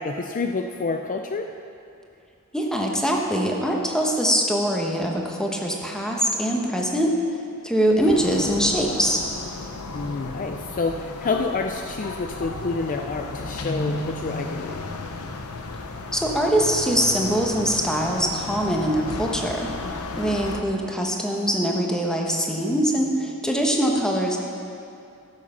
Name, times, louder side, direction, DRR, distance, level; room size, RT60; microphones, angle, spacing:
voice 1, 0.0-1.5 6.8-7.1 9.9-14.8 19.8-20.4, left 3 dB, 35° left, 5 dB, 0.4 m, -29 dB
voice 2, 2.5-7.1 7.6-9.2 16.1-19.7 20.2-24.4, equal, 5° left, -1 dB, 1.2 m, -23 dB
sound 1, 8.0-20.6, left 3 dB, 75° left, 0.8 m, -34 dB
13.5 x 7.5 x 5.7 m, 2.6 s
head